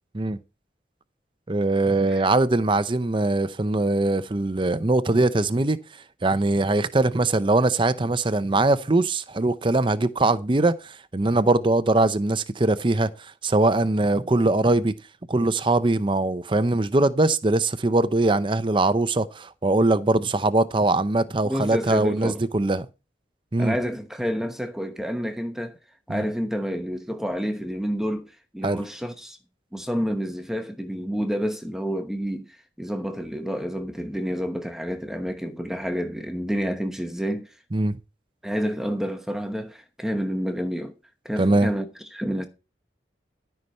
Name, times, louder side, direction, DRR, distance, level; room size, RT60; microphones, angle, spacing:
voice 1, 1.5-5.8 6.2-13.1 13.4-15.0 15.3-22.9 23.5-23.7 26.1-26.2 28.6-28.8 37.7-38.0 41.4-41.7, right 2 dB, 30° right, 0.6 m, -22 dB
voice 2, 21.4-22.4 23.6-25.8 26.1-29.4 29.7-37.5 38.4-40.9 41.2-42.5, equal, 5° right, 1.0 m, -29 dB
13.0 x 5.8 x 5.4 m
head